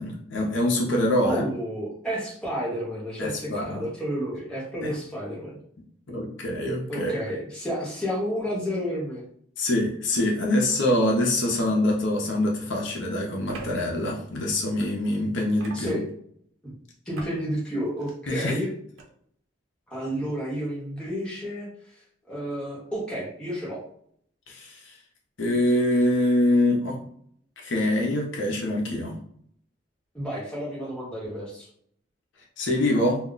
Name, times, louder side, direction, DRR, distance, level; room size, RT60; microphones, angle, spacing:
voice 1, 0.0-1.5 3.2-3.9 4.8-4.9 6.1-7.2 9.6-16.0 18.3-18.6 24.5-25.0 25.4-27.0 27.6-29.2 32.6-33.2, left 1 dB, 65° left, -1 dB, 0.6 m, -24 dB
voice 2, 1.2-5.5 6.9-9.2 15.7-16.0 16.6-16.7 17.1-18.7 19.9-21.7 22.3-23.8 30.1-31.7, equal, 5° left, -6 dB, 0.9 m, -31 dB
sound 1, 12.0-12.1 13.5-13.7 15.6-16.1 17.1-17.4 17.9-18.2 19.0-19.1, right 3 dB, 90° right, 0.6 m, -40 dB
2.3 x 2.1 x 3.7 m, 0.64 s
head